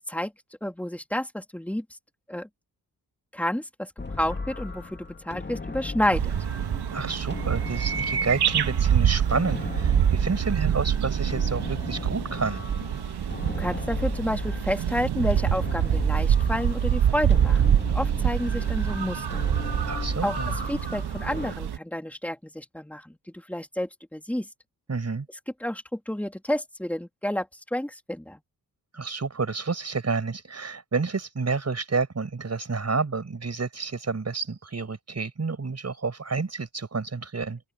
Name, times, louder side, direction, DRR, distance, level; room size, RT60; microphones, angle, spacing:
voice 1, 0.6-1.8 2.3-2.5 3.3-3.9 4.2-6.3 13.5-19.5 20.2-24.5 25.6-28.4, left 1 dB, 5° left, 2.7 m, -30 dB
sound 1, 4.0-21.5, left 3 dB, 25° left, 2.4 m, -37 dB
sound 2, 6.1-21.8, right 9 dB, 75° right, 1.3 m, -25 dB
voice 2, 6.9-12.6 19.9-20.6 24.9-25.3 28.9-37.6, right 4 dB, 40° right, 6.0 m, -29 dB
open air
cardioid pair, 80°, 39 cm